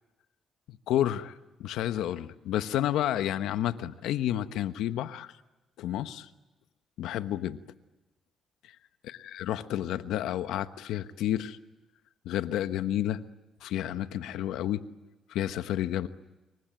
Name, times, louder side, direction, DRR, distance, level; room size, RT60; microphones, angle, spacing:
voice 1, 0.7-1.3 1.6-5.3 5.8-6.3 7.0-7.6 9.0-11.6 12.2-13.2 13.6-14.8 15.3-16.1, left 12 dB, 85° left, 11 dB, 1.1 m, -30 dB
27.0 x 23.5 x 9.1 m, 1.0 s
cardioid pair, 90°, 0 cm